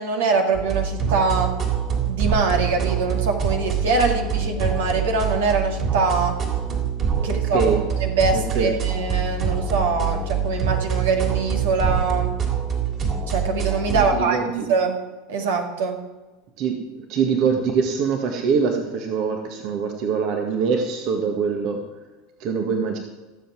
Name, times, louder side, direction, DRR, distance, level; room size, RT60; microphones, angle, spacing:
voice 1, 0.0-1.6 2.1-6.4 7.2-7.6 8.0-12.3 13.3-14.4 14.7-15.0 15.3-16.0, right 4 dB, 75° right, 3 dB, 2.1 m, -23 dB
sound 1, 0.5-14.2, right 6 dB, 40° right, 3.5 m, -25 dB
voice 2, 7.1-7.8 8.3-8.7 13.9-14.7 16.6-16.8 17.1-21.8 22.4-23.0, right 5 dB, 55° right, 3 dB, 1.8 m, -24 dB
15.5 x 7.7 x 6.1 m, 1.2 s
hypercardioid pair, 85°, 0 cm